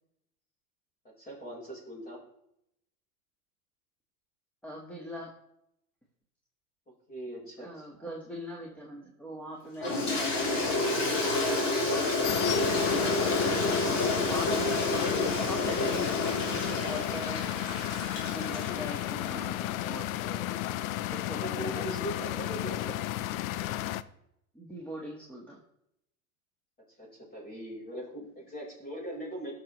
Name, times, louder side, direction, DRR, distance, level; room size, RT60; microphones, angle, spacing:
voice 1, 1.0-2.2 6.9-8.1 12.3-13.6 15.9-16.3 21.3-23.0 27.0-29.5, right 1 dB, 20° left, -2 dB, 4.5 m, -41 dB
voice 2, 4.6-5.3 7.6-10.8 12.9-14.9 15.3-17.6 18.3-20.6 21.1-21.8 24.5-25.6, equal, 5° left, -4 dB, 1.5 m, -42 dB
Toilet flush, 9.8-19.2, left 2 dB, 40° left, 3.2 m, -29 dB
sound 1, 12.2-24.0, left 14 dB, 70° left, 0.6 m, -33 dB
18.0 x 6.4 x 3.1 m, 0.78 s
hypercardioid pair, 110°, 44 cm